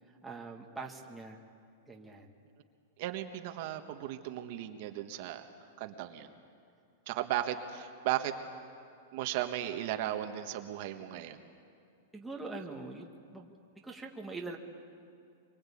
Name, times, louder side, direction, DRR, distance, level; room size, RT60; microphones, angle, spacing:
voice 1, 0.2-1.4 1.9-2.3 12.1-13.5 13.8-14.6, right 3 dB, 5° right, -1 dB, 1.5 m, -43 dB
voice 2, 3.0-5.5 5.8-6.3 7.1-8.3 9.1-11.4, right 12 dB, 45° right, 6 dB, 1.4 m, -36 dB
24.5 x 23.5 x 8.6 m, 2.5 s
supercardioid pair, 170°, 0 cm